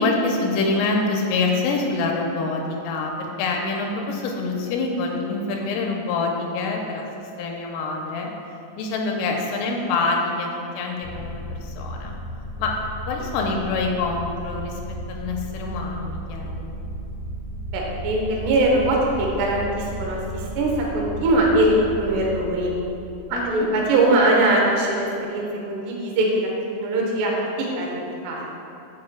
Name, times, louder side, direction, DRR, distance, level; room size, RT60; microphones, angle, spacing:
voice 1, 0.0-8.3 8.8-10.5 10.8-12.1 12.6-12.7 13.1-16.7 23.3-23.7, left 3 dB, 85° left, 0 dB, 3.2 m, -26 dB
sound 1, 11.0-23.9, right 1 dB, 70° left, 1.6 m, -34 dB
voice 2, 17.7-22.7 23.3-26.5 26.8-27.3 27.6-28.0 28.2-28.4, right 1 dB, 70° right, -2 dB, 2.8 m, -21 dB
9.6 x 8.0 x 2.3 m, 2.9 s
omnidirectional pair, 5.8 m